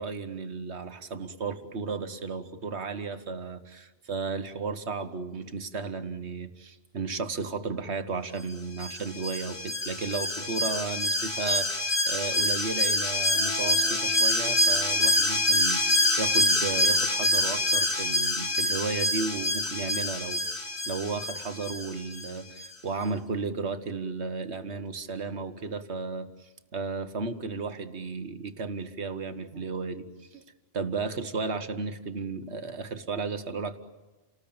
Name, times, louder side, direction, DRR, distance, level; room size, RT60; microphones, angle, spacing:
voice 1, 0.0-20.4 20.9-30.4 30.7-33.8, right 4 dB, 85° right, 9 dB, 1.8 m, -34 dB
Alarm, 8.8-22.3 22.6-22.7, left 1 dB, 90° left, 2.9 m, -26 dB
Piano, 13.3-20.6, right 4 dB, 5° left, 3.5 m, -46 dB
29.5 x 20.0 x 8.9 m, 1.2 s
omnidirectional pair, 1.1 m